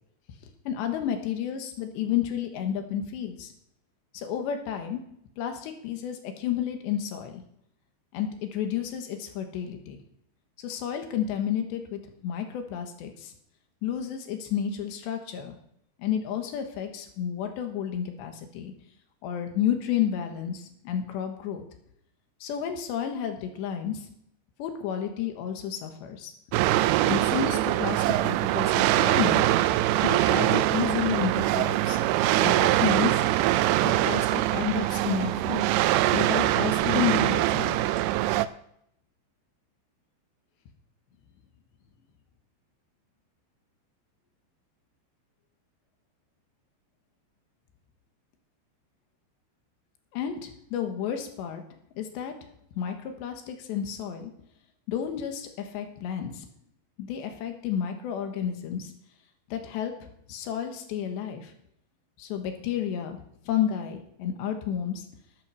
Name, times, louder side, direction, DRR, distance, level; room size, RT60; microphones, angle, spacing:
voice 1, 0.7-3.5 4.1-5.0 5.4-7.4 8.1-10.0 10.6-13.3 13.8-15.5 16.0-18.7 19.2-21.6 22.4-24.1 24.6-26.3 27.0-29.4 30.0-32.0 32.4-33.2 33.8-35.7 36.1-37.8 50.1-51.6 52.0-52.3 52.8-54.3 54.9-56.5 57.0-58.9 59.5-59.9 60.3-61.5 62.2-63.2 63.5-65.0, left 9 dB, 70° left, 5 dB, 3.4 m, -31 dB
sound 1, 26.5-38.5, right 15 dB, 85° right, 2.7 m, -23 dB
sound 2, 26.7-36.2, right 3 dB, 65° right, 5.2 m, -49 dB
12.0 x 8.0 x 6.3 m, 0.73 s
omnidirectional pair, 5.6 m